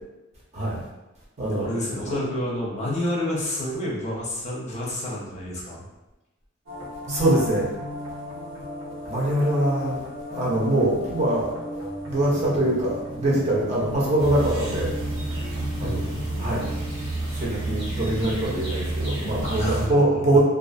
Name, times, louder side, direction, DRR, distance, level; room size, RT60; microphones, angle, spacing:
voice 1, 1.5-5.8 15.8-16.3 19.4-20.4, left 1 dB, 35° left, -4 dB, 0.6 m, -29 dB
sound 1, 6.7-17.1, left 2 dB, 85° right, 0.9 m, -36 dB
voice 2, 7.1-7.7 9.1-10.0 10.3-14.9 15.8-16.0 16.4-16.7 17.4-20.4, right 1 dB, 35° right, -5 dB, 0.7 m, -23 dB
sound 2, 14.2-19.9, right 2 dB, 65° right, 1.0 m, -30 dB
2.4 x 2.4 x 2.5 m, 1.0 s
head